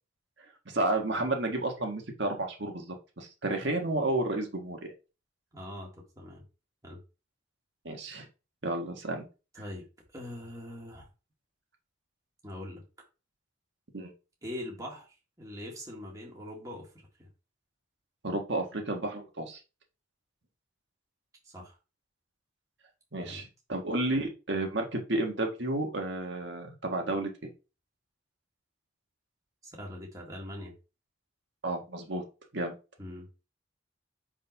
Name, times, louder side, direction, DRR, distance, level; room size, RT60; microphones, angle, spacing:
voice 1, 0.7-4.9 7.8-8.3 8.6-9.2 13.9-14.1 18.2-19.6 23.1-27.5 31.6-32.2 32.5-32.7, right 2 dB, 65° right, 2 dB, 1.6 m, -31 dB
voice 2, 5.5-6.4 6.8-7.0 9.5-9.9 10.1-11.1 12.4-12.8 14.4-15.1 15.4-16.9 17.2-17.3 21.4-21.7 23.2-23.5 29.6-30.7 33.0-33.3, left 1 dB, 15° right, -2 dB, 1.9 m, -42 dB
5.4 x 3.7 x 5.3 m, 0.30 s
head